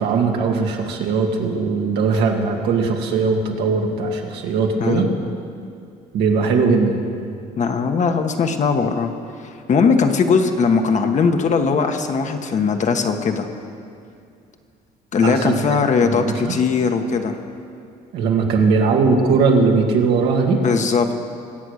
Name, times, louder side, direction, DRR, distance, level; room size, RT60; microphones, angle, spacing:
voice 1, 0.0-5.1 6.1-7.0 15.2-16.5 18.1-20.6, right 4 dB, 80° right, 1 dB, 2.2 m, -19 dB
voice 2, 4.8-5.1 7.6-9.1 9.4-13.5 15.1-17.4 20.5-21.1, left 5 dB, 45° left, 5 dB, 1.3 m, -19 dB
22.5 x 8.4 x 6.5 m, 2.4 s
cardioid pair, 110°, 17 cm